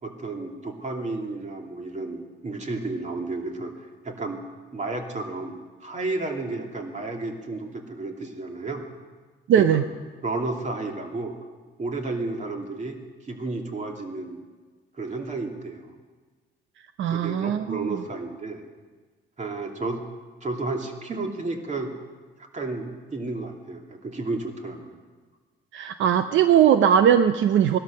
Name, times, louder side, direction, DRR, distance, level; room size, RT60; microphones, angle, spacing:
voice 1, 0.0-3.7 4.0-4.4 4.7-5.5 5.8-8.8 9.6-9.8 10.2-11.3 11.8-13.0 13.2-14.4 15.0-15.8 17.1-18.6 19.4-20.0 20.4-21.9 22.4-25.0, right 3 dB, 35° right, 2 dB, 2.6 m, -32 dB
voice 2, 9.5-9.8 17.0-17.9 25.7-27.8, right 9 dB, 75° right, 10 dB, 0.6 m, -19 dB
18.5 x 12.0 x 6.5 m, 1.4 s
cardioid pair, 90°, 20 cm